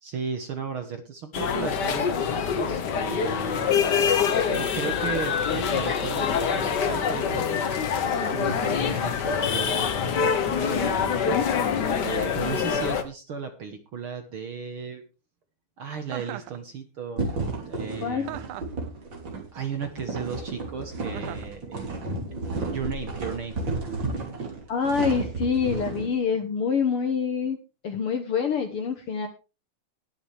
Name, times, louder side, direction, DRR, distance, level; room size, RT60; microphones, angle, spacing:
voice 1, 0.0-3.7 4.5-11.4 12.0-15.0 15.8-17.2 17.7-18.5 19.5-21.9 22.7-23.6, right 6 dB, 55° right, 6 dB, 1.7 m, -35 dB
sound 1, 1.3-13.0, left 7 dB, 85° left, 0.9 m, -25 dB
Chuckle chortle, 16.1-16.6 18.2-18.8 21.1-21.5, right 14 dB, 80° right, 2.2 m, -38 dB
sound 2, 17.2-26.1, right 3 dB, 40° right, 3.6 m, -32 dB
voice 2, 18.0-18.3 22.1-22.2 24.7-27.6 27.8-29.3, left 6 dB, 60° left, 7 dB, 1.7 m, -26 dB
21.0 x 7.1 x 3.4 m, 0.31 s
omnidirectional pair, 3.6 m